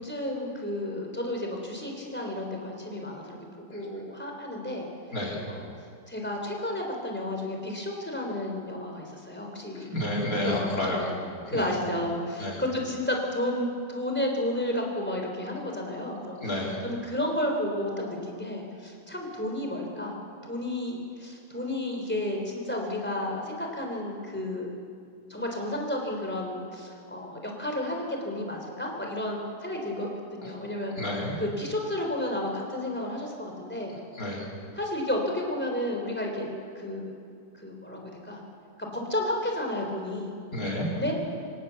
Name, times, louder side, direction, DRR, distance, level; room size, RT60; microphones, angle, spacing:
voice 1, 0.0-4.9 5.5-5.6 6.1-9.9 10.4-11.1 11.5-16.4 16.8-20.2 20.4-24.8 25.3-31.0 31.4-34.0 34.8-36.5 36.8-37.1 37.6-38.4 38.9-40.3 41.0-41.2, left 1 dB, 5° left, 1 dB, 3.8 m, -32 dB
voice 2, 5.1-5.4 9.7-11.1 11.5-11.7 12.4-12.6 16.4-16.8 30.4-30.5 31.0-31.4 34.1-34.5 40.5-40.9, left 1 dB, 45° left, -3 dB, 4.7 m, -30 dB
25.5 x 18.0 x 7.2 m, 2.3 s
omnidirectional pair, 2.0 m